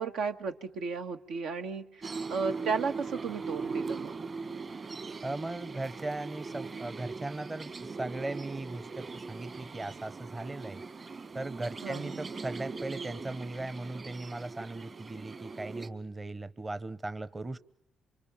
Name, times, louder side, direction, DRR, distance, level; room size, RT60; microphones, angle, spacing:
voice 1, 0.0-4.1 11.8-12.2, right 5 dB, 85° right, 5 dB, 1.7 m, -34 dB
sound 1, 2.0-15.9, right 4 dB, 40° right, 1.9 m, -40 dB
voice 2, 5.2-10.8 11.3-17.6, right 2 dB, 20° right, 14 dB, 0.9 m, -38 dB
28.5 x 24.5 x 7.3 m, 0.80 s
cardioid pair, 90°, 0 cm